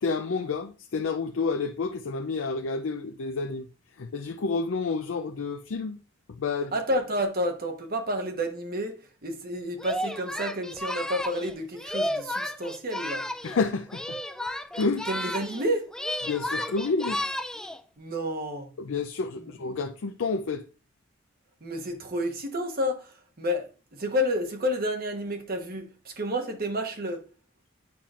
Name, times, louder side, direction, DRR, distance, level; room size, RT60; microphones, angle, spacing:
voice 1, 0.0-3.7 4.0-6.0 6.3-6.7 13.4-14.2 14.7-15.1 16.3-17.2 18.8-20.6, left 4 dB, 70° left, 0.5 m, -29 dB
voice 2, 6.7-13.3 15.1-15.9 18.0-18.7 21.6-23.1 23.4-27.2, equal, 50° right, 1.2 m, -30 dB
Singing, 9.8-13.6 13.9-15.7 15.9-17.8, left 1 dB, 5° left, 0.3 m, -33 dB
8.5 x 5.8 x 2.4 m
head